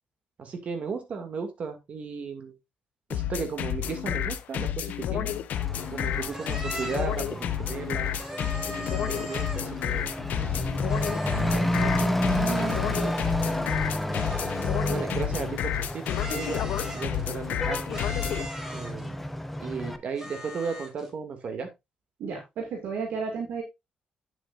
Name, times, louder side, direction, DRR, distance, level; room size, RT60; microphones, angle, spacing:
voice 1, 0.4-2.5 3.1-5.3 5.9-8.1 8.7-10.5 14.0-14.5 14.9-17.9 18.7-19.3 19.6-21.7, right 5 dB, 55° right, 6 dB, 2.4 m, -35 dB
sound 1, 3.1-18.5, left 11 dB, 80° left, 0.8 m, -30 dB
Truck / Accelerating revving vroom, 5.5-20.0, left 1 dB, 5° left, 1.0 m, -31 dB
sound 2, 6.3-7.2 8.2-9.8 10.9-11.7 12.5-13.5 14.1-15.3 16.1-17.2 17.9-19.1 20.2-21.1, equal, 15° right, 2.5 m, -39 dB
voice 2, 11.3-13.2 22.2-23.6, right 5 dB, 85° right, 0 dB, 2.3 m, -34 dB
9.0 x 7.8 x 2.6 m, 0.22 s
cardioid pair, 100°, 3 cm